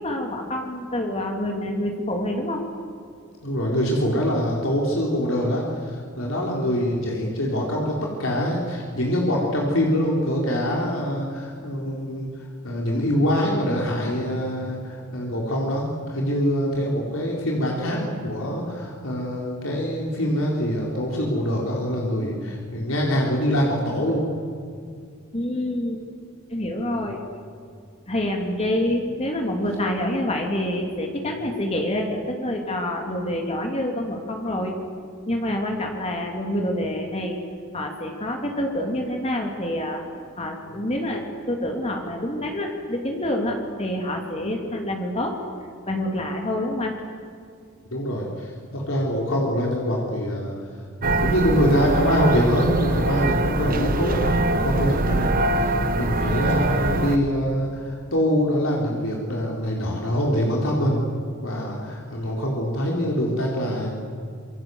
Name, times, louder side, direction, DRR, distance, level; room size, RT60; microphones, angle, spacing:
voice 1, 0.0-2.6 25.3-26.0 26.5-27.2 28.1-34.8 35.3-37.4 37.7-40.0 40.4-45.4 45.9-47.0, left 1 dB, 30° left, 2 dB, 2.8 m, -27 dB
voice 2, 3.4-24.2 26.9-27.1 47.9-50.6 51.0-61.0 61.4-64.0, equal, 75° left, -2 dB, 4.2 m, -24 dB
sound 1, 51.0-57.2, right 2 dB, 45° right, 1.3 m, -23 dB
27.0 x 24.0 x 8.0 m, 2.3 s
head